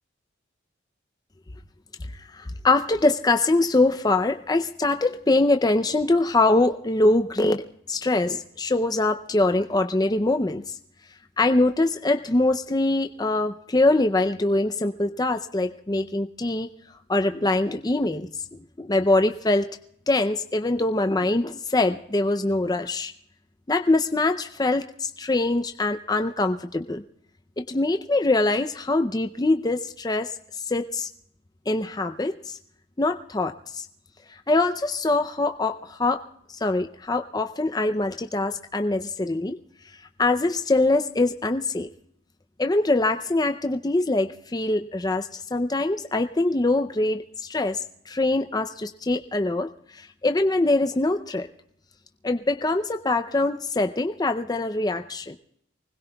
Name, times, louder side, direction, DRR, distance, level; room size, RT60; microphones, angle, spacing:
voice 1, 2.3-7.6 7.9-10.6 11.4-16.7 17.1-19.7 20.1-23.1 23.7-27.0 27.6-30.3 30.7-31.1 31.7-32.6 33.0-33.9 34.5-36.2 36.5-39.6 40.2-41.9 42.6-51.5 52.2-55.4, left 2 dB, 20° left, 7 dB, 0.5 m, -23 dB
24.5 x 20.5 x 2.3 m, 0.69 s
head